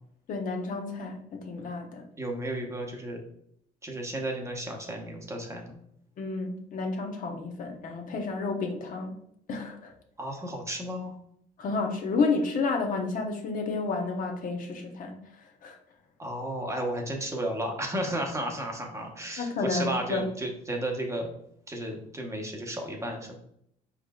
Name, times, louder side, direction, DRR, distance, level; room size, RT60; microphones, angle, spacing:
voice 1, 0.3-2.0 6.2-9.1 9.5-9.9 11.6-15.2 15.6-15.8 19.4-20.3, left 4 dB, 55° left, 3 dB, 0.9 m, -31 dB
voice 2, 2.2-3.2 3.8-5.7 10.2-11.1 16.2-21.3 21.7-23.3, right 1 dB, 15° right, 1 dB, 1.0 m, -33 dB
4.8 x 4.7 x 2.4 m, 0.70 s
cardioid pair, 110°, 17 cm